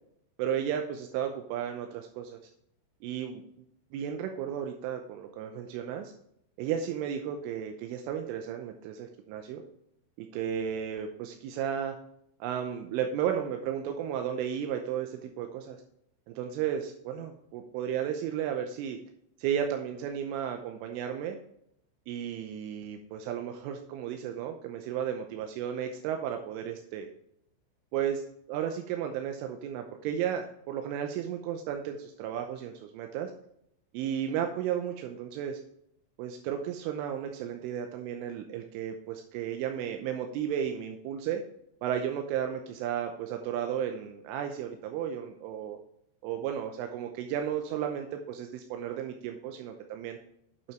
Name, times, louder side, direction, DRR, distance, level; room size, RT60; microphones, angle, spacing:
voice 1, 0.4-2.4 3.0-3.4 3.9-6.1 6.6-9.6 10.2-12.0 12.4-15.8 16.3-19.0 19.4-21.4 22.1-27.1 27.9-28.2 28.5-33.3 33.9-35.6 36.2-41.4 41.8-45.8 46.2-50.2, right 9 dB, 85° right, 5 dB, 3.3 m, -34 dB
8.7 x 6.5 x 4.5 m, 0.71 s
omnidirectional pair, 5.6 m